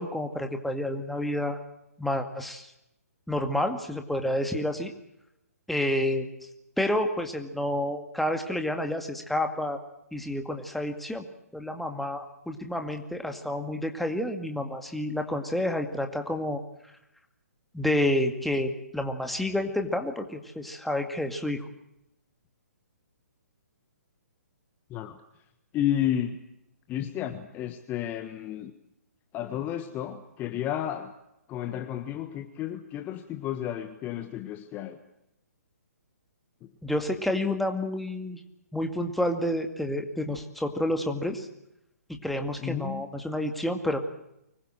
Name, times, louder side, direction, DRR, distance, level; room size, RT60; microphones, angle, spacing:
voice 1, 0.0-1.6 2.0-2.7 3.3-4.9 5.7-6.3 6.8-9.8 10.1-11.3 11.5-16.6 17.7-21.6 36.8-38.4 38.7-41.5 42.1-44.0, left 1 dB, ahead, 5 dB, 2.2 m, -29 dB
voice 2, 25.7-26.4 26.9-28.7 29.3-31.1 31.5-35.0 42.6-43.0, left 11 dB, 20° left, 8 dB, 1.5 m, -32 dB
25.0 x 21.0 x 7.8 m, 0.83 s
figure-of-eight pair, 130°, 9 cm